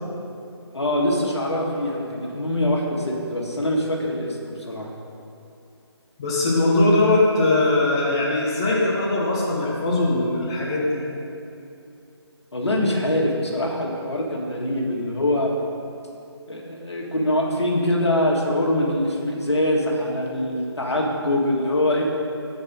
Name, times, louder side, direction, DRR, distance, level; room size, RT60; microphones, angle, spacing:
voice 1, 0.7-4.9 12.5-15.5 16.5-22.0, left 1 dB, 75° left, -2 dB, 1.4 m, -23 dB
voice 2, 6.2-11.0, left 2 dB, 10° left, -5 dB, 0.3 m, -20 dB
6.6 x 4.7 x 5.2 m, 2.6 s
figure-of-eight pair, 150°, 14 cm